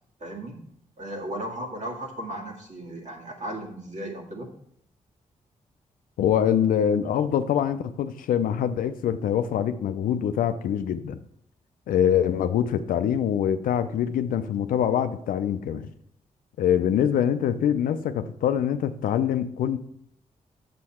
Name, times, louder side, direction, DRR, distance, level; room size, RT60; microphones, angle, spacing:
voice 1, 0.2-0.6 1.0-4.5, right 1 dB, 60° right, -1 dB, 2.0 m, -35 dB
voice 2, 6.2-11.2 11.9-15.9 16.6-19.8, left 9 dB, 85° left, 11 dB, 0.5 m, -24 dB
6.9 x 6.5 x 4.3 m, 0.69 s
cardioid pair, 55°, 14 cm